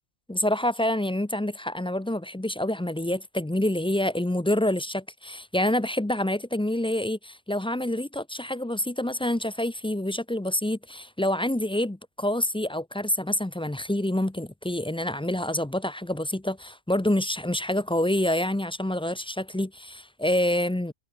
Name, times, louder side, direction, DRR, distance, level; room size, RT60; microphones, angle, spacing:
voice 1, 0.3-20.9, left 1 dB, 10° left, 0.3 m, -27 dB
omnidirectional pair, 1.1 m